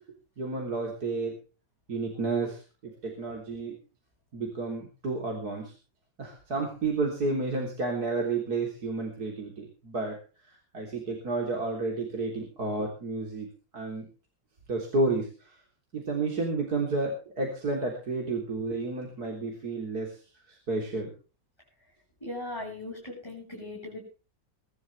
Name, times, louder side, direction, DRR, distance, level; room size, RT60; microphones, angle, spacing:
voice 1, 0.4-1.4 1.9-3.8 4.3-5.7 6.2-10.2 10.7-13.5 13.7-14.1 14.7-15.6 15.9-20.2 20.5-21.1, right 3 dB, 50° right, 1 dB, 4.0 m, -31 dB
voice 2, 22.2-24.1, left 2 dB, 10° left, -5 dB, 7.9 m, -38 dB
23.5 x 12.5 x 3.4 m, 0.35 s
omnidirectional pair, 2.1 m